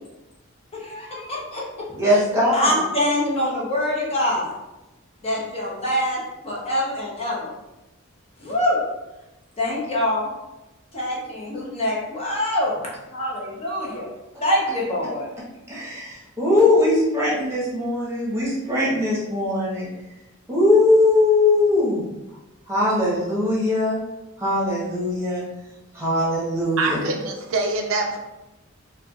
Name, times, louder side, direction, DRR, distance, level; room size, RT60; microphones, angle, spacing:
voice 1, 0.7-1.6 2.5-4.5 5.2-7.5 8.4-8.8 9.6-10.3 10.9-12.8 13.1-14.1 14.4-15.3, left 1 dB, 30° left, -4 dB, 0.7 m, -24 dB
voice 2, 1.9-2.8 15.7-19.9 20.5-22.0 22.7-24.0 24.4-25.4 25.9-27.0, left 2 dB, 15° right, -7 dB, 1.0 m, -20 dB
voice 3, 26.8-28.2, right 3 dB, 70° right, 3 dB, 0.4 m, -24 dB
4.2 x 2.3 x 2.3 m, 1.0 s
head